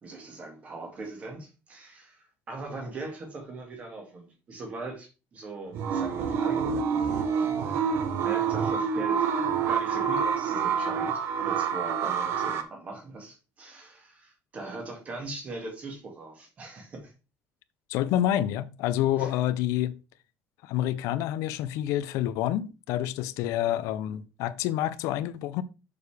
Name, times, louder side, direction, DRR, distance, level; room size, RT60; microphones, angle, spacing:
voice 1, 0.0-9.3 9.7-17.1 19.2-19.3, right 3 dB, 25° right, 1.9 m, -41 dB
sound 1, 5.7-12.6, right 6 dB, 50° right, 1.0 m, -27 dB
voice 2, 17.9-20.0 20.6-25.6, left 12 dB, 80° left, 0.6 m, -28 dB
6.8 x 6.6 x 3.4 m
cardioid pair, 175°, 5 cm